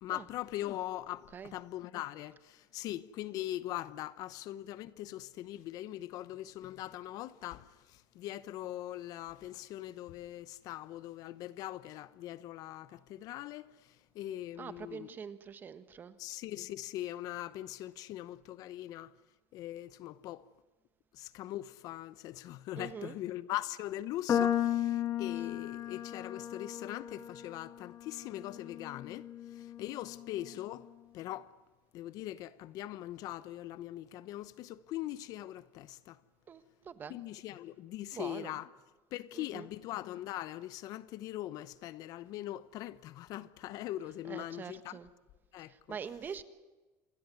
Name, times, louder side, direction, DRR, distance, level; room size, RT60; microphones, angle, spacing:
voice 1, 0.0-15.2 16.2-19.1 19.5-20.5 21.1-30.9 31.1-31.5 31.9-36.2 37.1-38.7 39.1-45.0 45.5-46.0, left 14 dB, 50° left, 0.9 m, -41 dB
voice 2, 14.6-16.2 22.8-23.2 36.5-37.1 38.1-38.5 39.3-39.7 44.3-45.1 45.7-46.4, right 6 dB, 25° right, 1.4 m, -44 dB
sound 1, 24.3-30.6, left 10 dB, 30° left, 2.4 m, -35 dB
28.0 x 20.5 x 9.4 m
cardioid pair, 160°, 8 cm